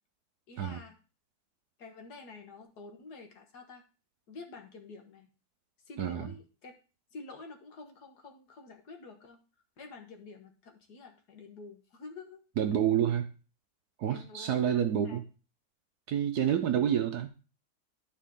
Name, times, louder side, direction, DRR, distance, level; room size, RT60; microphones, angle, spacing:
voice 1, 0.5-1.0 1.8-3.8 4.3-5.3 5.9-6.7 7.1-9.4 9.8-12.4 14.1-15.2 16.5-16.8, left 3 dB, 60° left, 1.8 m, -49 dB
voice 2, 6.0-6.3 12.6-13.3 14.0-15.2 16.1-17.3, right 9 dB, 65° right, 1.1 m, -28 dB
12.0 x 4.6 x 3.7 m
omnidirectional pair, 2.0 m